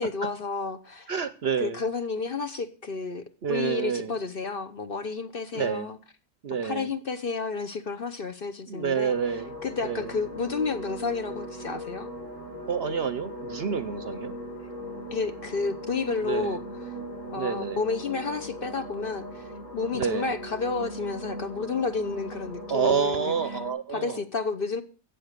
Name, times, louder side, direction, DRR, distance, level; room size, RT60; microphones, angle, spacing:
voice 1, 0.0-1.1 1.6-3.2 3.5-6.0 6.6-9.1 9.6-12.1 15.1-16.6 17.3-19.4 19.7-23.3 23.9-24.8, left 4 dB, 45° left, 0.9 m, -31 dB
voice 2, 1.1-1.8 3.4-4.1 5.5-5.9 6.4-6.9 8.7-9.6 9.8-10.1 12.7-14.4 16.2-16.6 17.4-17.9 19.9-20.3 22.7-24.2, right 6 dB, 55° right, 0.8 m, -28 dB
sound 1, 9.1-23.7, equal, 65° left, 4.3 m, -39 dB
14.5 x 8.0 x 6.6 m
omnidirectional pair, 1.5 m